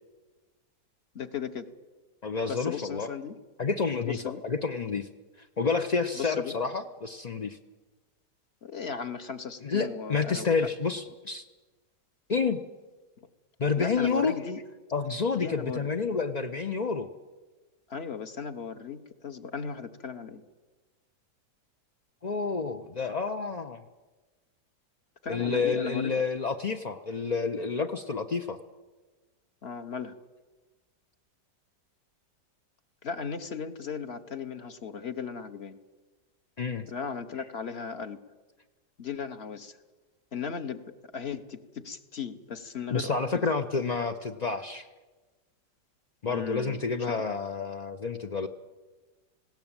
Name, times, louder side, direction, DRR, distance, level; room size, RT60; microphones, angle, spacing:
voice 1, 1.1-1.7 2.5-3.4 4.0-4.4 6.1-6.6 8.6-10.5 13.8-14.6 15.3-15.9 17.9-20.4 25.2-26.1 29.6-30.2 33.0-35.8 36.9-38.2 39.0-39.8 40.3-40.8 41.1-43.4 46.3-46.8, left 6 dB, 45° left, 10 dB, 1.1 m, -36 dB
voice 2, 2.2-3.1 3.6-5.1 5.6-7.6 9.6-11.4 12.3-12.6 13.6-14.4 14.9-17.1 22.2-23.8 25.3-28.6 36.6-36.9 42.9-44.9 46.2-48.5, left 5 dB, 60° left, 6 dB, 0.4 m, -29 dB
19.5 x 17.0 x 8.9 m, 1.2 s
omnidirectional pair, 1.9 m